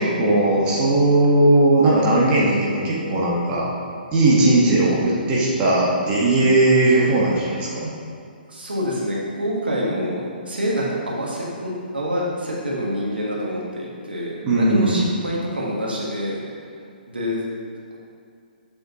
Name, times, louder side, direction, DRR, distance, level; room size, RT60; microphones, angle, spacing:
voice 1, 0.0-3.7 4.1-7.9 14.4-15.1, right 2 dB, 25° right, -6 dB, 1.5 m, -18 dB
voice 2, 8.5-16.4 17.1-17.4, equal, 80° right, -4 dB, 1.8 m, -26 dB
7.6 x 6.6 x 3.0 m, 2.3 s
figure-of-eight pair, 130°, 5 cm